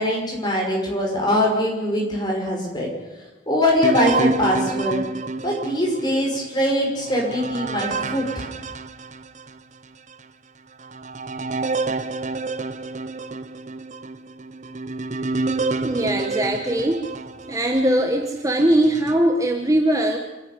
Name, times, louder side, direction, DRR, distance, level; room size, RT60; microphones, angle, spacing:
voice 1, 0.0-2.9 3.5-5.0 5.4-8.5, left 1 dB, 25° left, -1 dB, 5.7 m, -22 dB
sound 1, 3.8-9.6 10.1-10.2 10.8-18.0 18.6-19.2, right 3 dB, 40° right, 0.9 m, -29 dB
voice 2, 15.8-17.0 17.5-20.2, right 1 dB, 20° right, 3 dB, 1.2 m, -20 dB
26.5 x 10.5 x 9.7 m, 1.1 s
head